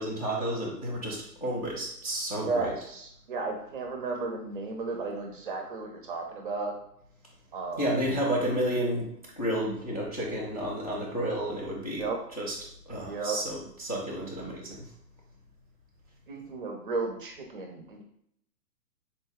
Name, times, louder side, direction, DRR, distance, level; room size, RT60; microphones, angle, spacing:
voice 1, 0.0-2.7 7.8-9.1 9.4-12.1 12.4-12.5 12.9-14.8, right 1 dB, 25° left, -6 dB, 0.3 m, -31 dB
voice 2, 2.4-6.7 7.5-8.0 11.9-12.2 13.0-13.4 16.3-18.0, right 3 dB, 35° right, 3 dB, 0.5 m, -34 dB
4.0 x 2.2 x 3.3 m, 0.71 s
hypercardioid pair, 125°, 50 cm